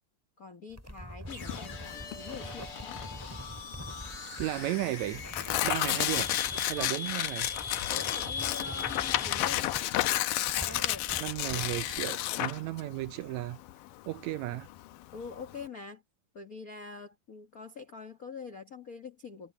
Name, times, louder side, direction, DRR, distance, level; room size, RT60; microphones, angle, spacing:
voice 1, 0.4-3.0 6.8-6.9 7.9-9.8 10.5-11.1 15.1-16.0 16.3-19.5, left 5 dB, 55° left, 1.0 m, -44 dB
sound 1, 0.7-12.0, equal, 5° right, 5.8 m, -46 dB
Flo fx xvi, 1.2-9.5, left 4 dB, 35° left, 2.8 m, -41 dB
Tearing, 1.4-15.7, left 15 dB, 80° left, 2.4 m, -32 dB
voice 2, 4.4-5.2 5.6-6.4 6.7-7.5 11.2-13.6 14.1-14.7, right 16 dB, 80° right, 1.6 m, -34 dB
omnidirectional pair, 3.8 m